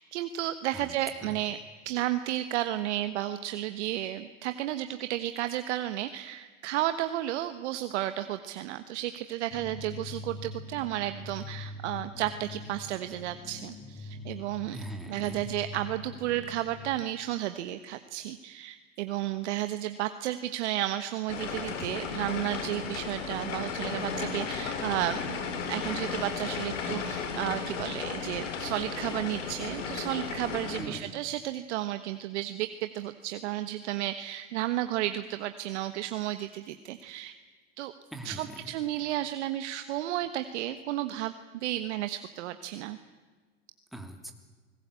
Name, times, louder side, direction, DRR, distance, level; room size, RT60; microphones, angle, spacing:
voice 1, 0.0-1.6 1.8-14.8 15.1-25.2 25.7-37.3 37.8-37.9 38.2-43.0, right 13 dB, 65° right, 10 dB, 1.3 m, -33 dB
sound 1, 9.5-17.1, left 3 dB, 35° left, 2.3 m, -43 dB
voice 2, 14.7-15.5 30.8-31.1 38.1-38.7 43.9-44.3, right 1 dB, ahead, 4 dB, 3.1 m, -42 dB
sound 2, 21.3-30.8, left 5 dB, 75° left, 4.6 m, -34 dB
27.0 x 20.0 x 8.3 m, 1.4 s
hypercardioid pair, 110°, 37 cm